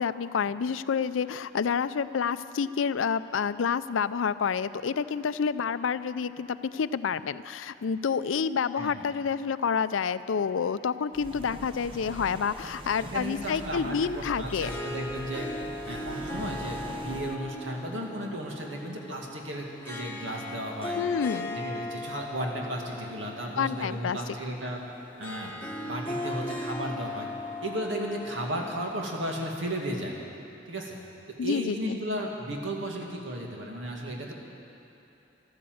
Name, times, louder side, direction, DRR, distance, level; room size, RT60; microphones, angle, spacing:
voice 1, 0.0-14.7 21.0-21.6 23.6-24.2 31.4-32.0, left 6 dB, 85° left, 15 dB, 0.4 m, -29 dB
sound 1, 11.1-17.4, right 1 dB, 25° right, 0.7 m, -43 dB
voice 2, 13.0-15.5 15.9-21.0 21.5-24.8 25.2-25.6 25.8-27.3 27.6-30.1 30.7-31.0 31.3-34.3, right 1 dB, 80° right, 0 dB, 2.2 m, -34 dB
Harp, 14.2-29.5, left 1 dB, 10° left, 1.2 m, -38 dB
13.5 x 13.0 x 7.8 m, 2.8 s
head